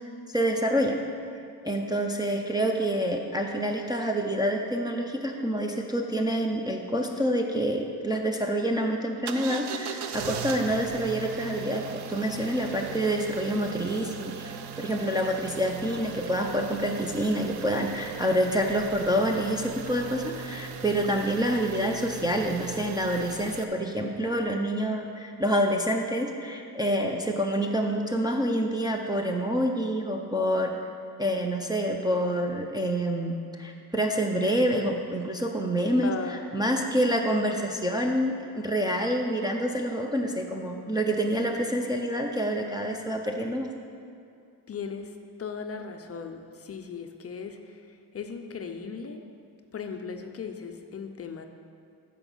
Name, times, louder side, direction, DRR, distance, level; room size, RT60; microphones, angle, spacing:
voice 1, 0.3-1.0 1.6-30.7 31.2-43.7, equal, 10° right, 0 dB, 0.4 m, -27 dB
sound 1, 9.3-23.6, right 7 dB, 70° right, 0.6 m, -39 dB
voice 2, 21.3-22.0 36.0-36.9 44.7-45.1 45.4-49.2 49.7-51.5, left 5 dB, 35° left, 5 dB, 0.5 m, -38 dB
14.0 x 4.9 x 5.4 m, 2.4 s
wide cardioid pair, 165°, 41 cm